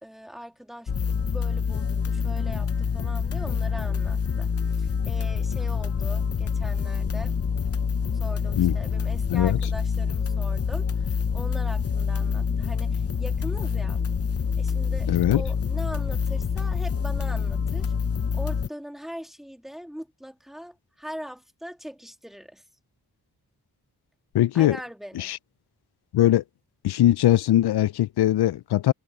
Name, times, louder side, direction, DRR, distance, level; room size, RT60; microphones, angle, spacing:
voice 1, 0.0-7.3 8.1-14.0 14.6-17.9 18.3-22.6 24.5-25.3, equal, ahead, 2.8 m, -41 dB
sound 1, 0.9-18.7, left 6 dB, 40° left, 0.8 m, -26 dB
voice 2, 15.1-15.4 24.3-24.8 25.2-25.4 26.1-26.4 26.8-28.9, left 13 dB, 85° left, 0.5 m, -20 dB
wide cardioid pair, 165°, 38 cm